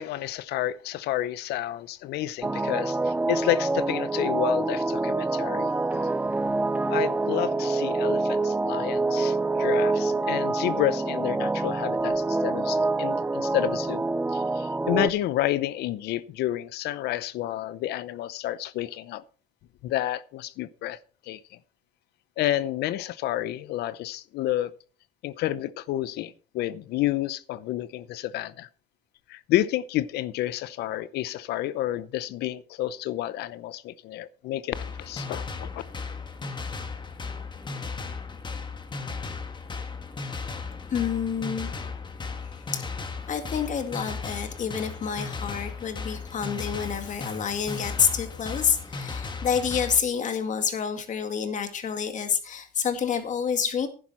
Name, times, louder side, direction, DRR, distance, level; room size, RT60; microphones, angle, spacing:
voice 1, 0.0-5.7 6.9-14.0 14.3-19.2 19.8-21.0 21.3-21.4 22.4-24.7 25.2-28.7 29.3-35.8, left 14 dB, 80° left, 0.7 m, -30 dB
sound 1, 2.4-15.1, right 3 dB, 10° right, 0.5 m, -26 dB
sound 2, 34.7-50.0, left 4 dB, 25° left, 1.8 m, -36 dB
voice 2, 40.9-41.7 42.7-42.9 43.3-53.9, left 7 dB, 45° left, 2.1 m, -28 dB
11.0 x 10.0 x 4.3 m
cardioid pair, 110°, 17 cm